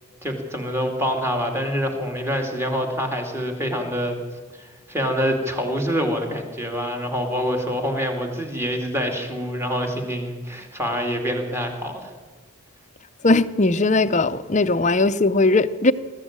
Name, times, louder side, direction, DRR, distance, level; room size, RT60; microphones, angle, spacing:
voice 1, 0.2-4.2 4.6-12.1, equal, 10° right, 2.6 m, -26 dB
voice 2, 13.2-15.9, left 2 dB, 35° left, 0.7 m, -19 dB
21.0 x 14.0 x 8.9 m
head